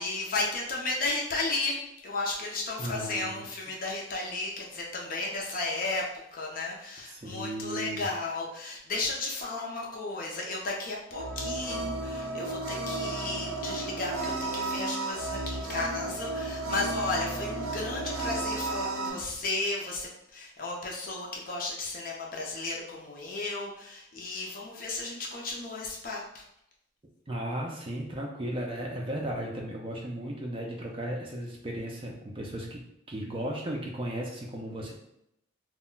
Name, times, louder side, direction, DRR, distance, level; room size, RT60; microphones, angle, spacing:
voice 1, 0.0-26.4, left 2 dB, 45° left, -2 dB, 0.5 m, -34 dB
voice 2, 2.8-3.4 7.1-8.1 27.3-32.8 33.1-34.9, right 1 dB, 25° right, -1 dB, 0.4 m, -35 dB
sound 1, 11.1-19.1, right 2 dB, 85° right, 0.5 m, -33 dB
2.2 x 2.1 x 3.7 m, 0.79 s
head